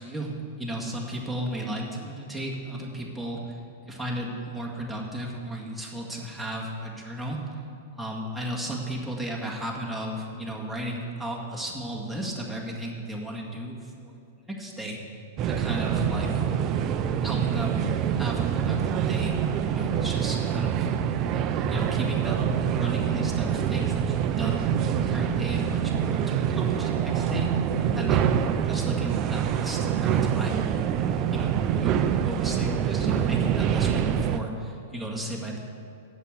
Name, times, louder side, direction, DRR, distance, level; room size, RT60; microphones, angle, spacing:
voice 1, 0.0-3.4 3.9-7.4 7.9-14.2 14.5-15.0 15.4-16.3 17.2-20.8 21.7-22.4 22.7-24.7 25.1-30.6 31.3-35.6, right 1 dB, ahead, -2 dB, 1.9 m, -34 dB
sound 1, 15.4-34.4, right 8 dB, 35° right, 0.5 m, -25 dB
8.1 x 7.3 x 8.1 m, 2.4 s
hypercardioid pair, 110°, 0 cm